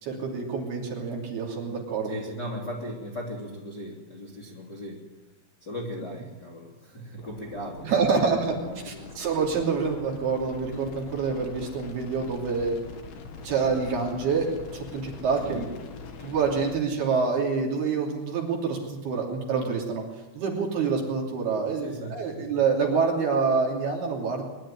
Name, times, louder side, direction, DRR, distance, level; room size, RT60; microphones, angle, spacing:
voice 1, 0.0-2.1 7.8-8.6 8.8-12.8 13.4-14.5 14.7-15.6 16.2-20.0 20.3-24.5, right 5 dB, 55° right, 0 dB, 4.8 m, -27 dB
voice 2, 2.0-5.0 5.6-9.1 15.4-15.7 21.8-22.5, equal, 25° left, -2 dB, 2.6 m, -38 dB
sound 1, 7.2-16.8, left 4 dB, 70° left, 4.4 m, -43 dB
23.0 x 11.5 x 10.0 m, 1.1 s
omnidirectional pair, 5.6 m